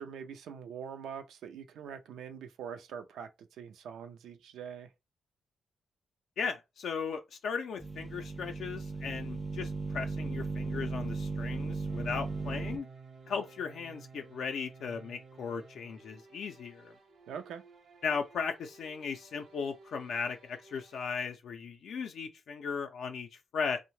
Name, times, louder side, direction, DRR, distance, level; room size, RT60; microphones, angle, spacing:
voice 1, 0.0-4.9 17.3-17.6, right 7 dB, 85° right, 0.4 m, -43 dB
voice 2, 6.4-12.9 13.3-16.9 18.0-23.8, left 6 dB, 75° left, 0.4 m, -37 dB
sound 1, 7.8-12.8, right 3 dB, ahead, 0.4 m, -36 dB
sound 2, 11.9-21.1, right 4 dB, 70° right, 0.8 m, -55 dB
2.7 x 2.0 x 3.1 m
cardioid pair, 75°, 0 cm